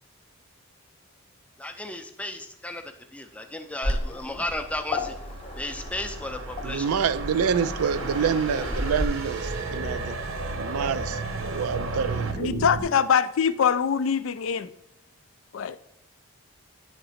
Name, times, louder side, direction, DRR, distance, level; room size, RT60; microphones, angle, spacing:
voice 1, 1.6-2.8 3.1-5.2 5.6-6.9, left 1 dB, 5° left, 6 dB, 0.5 m, -34 dB
Waves surf, 3.8-9.0, left 1 dB, 25° left, 0.9 m, -33 dB
sound 1, 4.4-12.8, right 2 dB, 40° right, 0.6 m, -37 dB
sound 2, 4.4-12.3, right 3 dB, 70° right, 0.9 m, -36 dB
voice 2, 6.6-10.2 10.5-12.7, right 7 dB, 85° right, 14 dB, 0.4 m, -27 dB
voice 3, 12.4-14.7 15.5-15.8, left 7 dB, 65° left, 14 dB, 0.4 m, -23 dB
9.1 x 3.9 x 4.2 m, 0.80 s
head